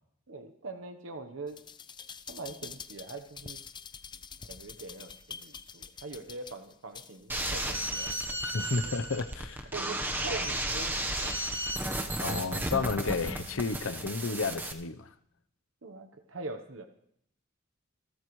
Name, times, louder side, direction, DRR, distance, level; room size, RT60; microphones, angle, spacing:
voice 1, 0.3-1.6 2.3-3.6 4.4-8.9 9.7-11.3 15.8-16.9, right 3 dB, 70° right, 1.0 m, -43 dB
sound 1, 1.5-8.5 8.9-9.0, left 6 dB, 20° left, 0.5 m, -46 dB
sound 2, 7.3-14.7, right 1 dB, 10° right, 1.0 m, -33 dB
voice 2, 8.4-9.7 12.2-15.1, left 4 dB, 75° left, 0.8 m, -32 dB
28.0 x 13.0 x 3.2 m
head